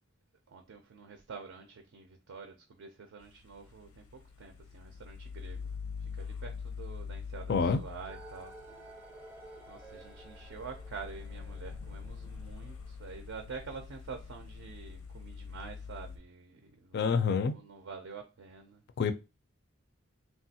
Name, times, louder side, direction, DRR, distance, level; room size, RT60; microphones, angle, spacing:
voice 1, 0.5-5.6 6.0-8.5 9.7-18.8, right 5 dB, 65° right, 0.4 m, -47 dB
sound 1, 3.3-16.2, left 5 dB, 90° left, 0.6 m, -44 dB
voice 2, 7.5-7.8 16.9-17.5 19.0-19.1, left 5 dB, 50° left, 0.3 m, -27 dB
sound 2, 8.1-13.2, right 2 dB, 10° right, 0.5 m, -53 dB
3.2 x 2.3 x 2.7 m
head